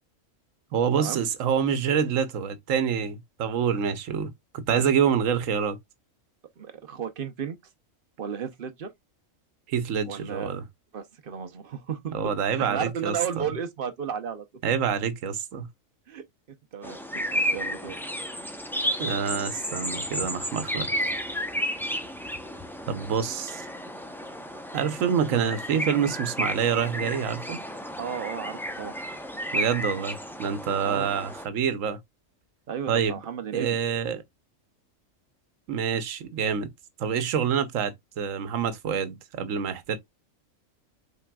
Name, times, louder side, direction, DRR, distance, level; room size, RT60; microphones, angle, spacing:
voice 1, 0.7-4.3 4.7-5.8 9.7-10.6 12.1-13.4 14.6-15.7 19.0-20.9 22.9-23.7 24.7-27.6 29.5-32.0 32.9-33.2 33.5-34.2 35.7-36.7 37.0-40.0, right 7 dB, 75° right, 1.2 m, -26 dB
voice 2, 6.6-7.6 8.2-8.9 10.0-10.6 10.9-14.5 16.1-18.0 28.0-28.9 30.8-31.1 32.7-33.8, right 7 dB, 50° right, 0.8 m, -34 dB
sound 1, 16.8-31.5, equal, 5° left, 0.4 m, -32 dB
5.9 x 3.9 x 2.2 m
omnidirectional pair, 1.4 m